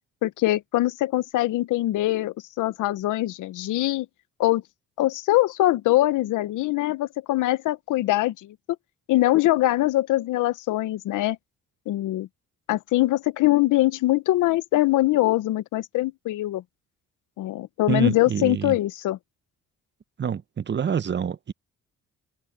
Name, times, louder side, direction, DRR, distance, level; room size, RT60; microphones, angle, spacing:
voice 1, 0.2-4.1 4.4-4.6 5.0-8.6 9.1-11.4 11.9-12.3 12.7-16.6 17.4-19.2, left 16 dB, 85° left, 0.9 m, -23 dB
voice 2, 17.9-18.8 20.2-21.5, right 7 dB, 35° right, 0.9 m, -27 dB
cardioid pair, 90°, 30 cm